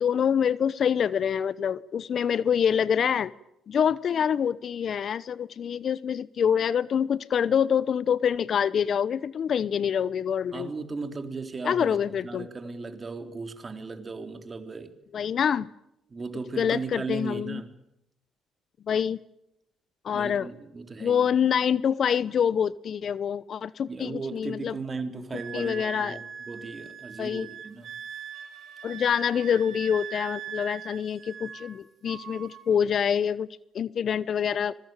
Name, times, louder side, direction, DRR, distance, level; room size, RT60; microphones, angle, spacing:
voice 1, 0.0-3.3 3.7-10.7 11.6-12.5 15.1-15.7 16.6-17.6 18.9-19.2 20.0-20.5 21.0-24.8 25.5-26.2 27.2-27.5 28.8-33.5 33.7-34.7, left 8 dB, 55° left, 19 dB, 0.9 m, -26 dB
voice 2, 10.5-12.0 12.2-14.9 16.1-17.7 20.1-21.3 23.9-27.9, right 4 dB, 35° right, 7 dB, 3.7 m, -36 dB
Wind instrument woodwind instrument, 25.3-31.7 32.0-32.7, right 7 dB, 60° right, 6.8 m, -41 dB
25.5 x 22.0 x 9.2 m, 0.84 s
supercardioid pair, 60°, 0 cm